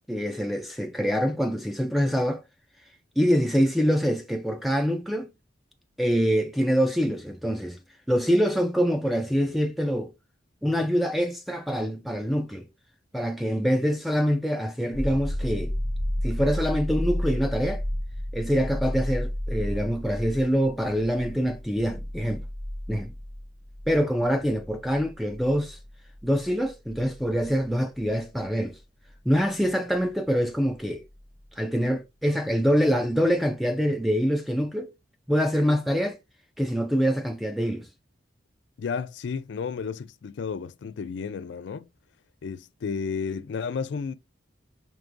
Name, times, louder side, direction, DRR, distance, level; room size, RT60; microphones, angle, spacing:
voice 1, 0.1-2.4 3.2-5.3 6.0-7.8 8.1-10.1 10.6-12.7 13.1-15.7 16.2-17.8 18.3-22.4 22.9-23.1 23.9-25.8 26.2-28.8 29.3-31.0 31.6-34.9 35.3-36.2 36.6-37.9, equal, ahead, 0.3 m, -25 dB
sound 1, 14.9-28.4 31.2-31.3, equal, 85° right, 1.3 m, -32 dB
voice 2, 38.8-41.9 42.4-44.1, left 5 dB, 75° left, 0.4 m, -32 dB
4.6 x 2.9 x 2.5 m
head